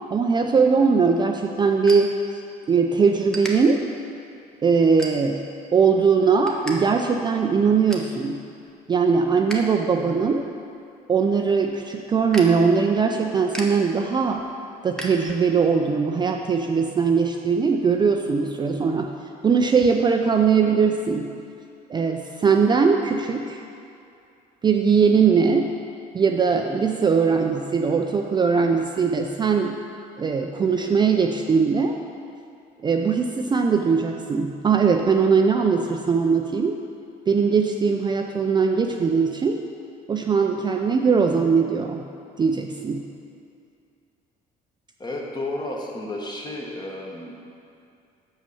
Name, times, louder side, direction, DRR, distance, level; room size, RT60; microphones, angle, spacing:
voice 1, 0.1-2.1 2.7-3.8 4.6-5.4 5.7-8.4 8.9-10.5 11.1-14.4 14.8-19.1 19.4-21.3 21.9-23.6 24.6-25.7 26.1-29.8 30.2-32.0 32.8-36.8 37.3-39.6 40.1-42.1 42.4-43.1, right 5 dB, 25° right, 3 dB, 0.4 m, -20 dB
sound 1, 0.8-2.8 3.3-3.5 4.1-4.3 5.0-5.5 5.9-6.8 7.0-7.1 7.5-8.1 8.6-9.7 10.0-15.7, right 1 dB, 5° left, 1.0 m, -38 dB
voice 2, 45.0-47.4, left 1 dB, 25° left, -1 dB, 1.3 m, -32 dB
5.9 x 5.7 x 7.0 m, 2.5 s
cardioid pair, 110°, 17 cm